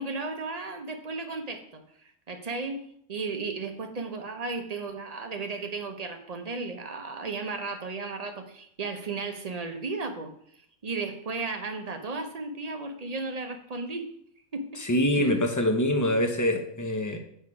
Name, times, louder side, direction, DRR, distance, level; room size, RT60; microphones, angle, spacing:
voice 1, 0.0-1.8 2.3-10.3 10.8-14.1 14.5-14.8 15.2-15.3, right 3 dB, 35° right, 5 dB, 0.8 m, -34 dB
voice 2, 14.8-17.2, left 1 dB, 20° left, 4 dB, 0.7 m, -25 dB
6.5 x 5.6 x 4.8 m, 0.69 s
omnidirectional pair, 1.3 m